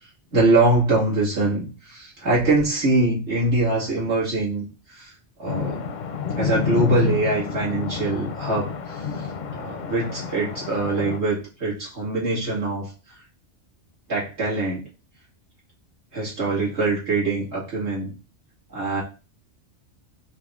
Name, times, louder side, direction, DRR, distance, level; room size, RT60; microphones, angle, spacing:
voice 1, 0.3-5.1 5.4-5.9 6.4-12.9 14.1-14.8 16.1-18.1 18.7-19.0, right 2 dB, 75° right, -7 dB, 2.6 m, -23 dB
sound 1, 5.5-11.2, left 5 dB, 55° left, 0.6 m, -29 dB
5.4 x 2.7 x 3.6 m, 0.33 s
omnidirectional pair, 1.2 m